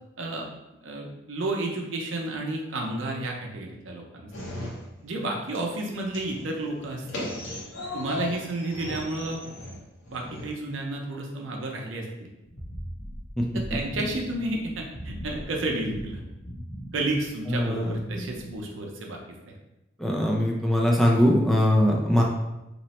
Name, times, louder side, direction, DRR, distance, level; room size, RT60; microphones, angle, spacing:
voice 1, 0.8-4.5 5.0-7.4 7.9-9.4 10.1-12.1 13.5-16.2 16.9-19.2 19.5-19.6, right 2 dB, 85° right, 1 dB, 0.6 m, -31 dB
sound 1, 4.3-5.3 5.5-10.5, left 2 dB, 75° left, 0.9 m, -37 dB
sound 2, 12.5-18.6, equal, 55° left, 1.1 m, -39 dB
voice 2, 17.5-17.9 20.0-22.2, equal, ahead, -2 dB, 0.3 m, -21 dB
2.9 x 2.1 x 4.1 m, 0.95 s
head